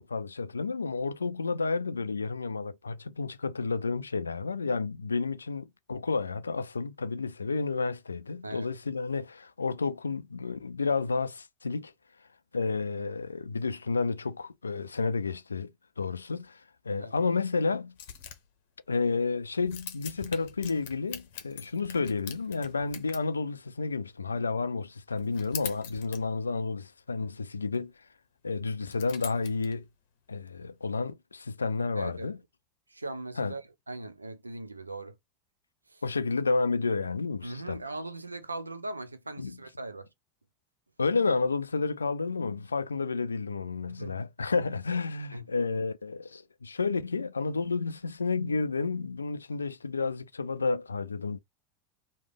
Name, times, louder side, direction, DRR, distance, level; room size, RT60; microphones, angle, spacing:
voice 1, 0.0-11.9 12.5-15.7 16.0-16.6 16.9-17.9 18.9-27.9 28.4-29.9 30.3-32.4 33.4-33.5 36.0-37.8 39.4-39.6 41.0-51.4, left 4 dB, 80° left, 0.3 m, -31 dB
sound 1, 18.0-18.5 18.9-19.0 19.6-23.2 25.1-26.7 27.6-27.7 28.8-29.8, left 9 dB, 60° left, 0.7 m, -43 dB
voice 2, 32.0-32.3 32.9-35.2 35.9-36.0 37.4-40.1 43.9-44.2 45.3-45.5, right 2 dB, 85° right, 0.4 m, -40 dB
3.1 x 2.1 x 3.4 m
figure-of-eight pair, 80°, 0 cm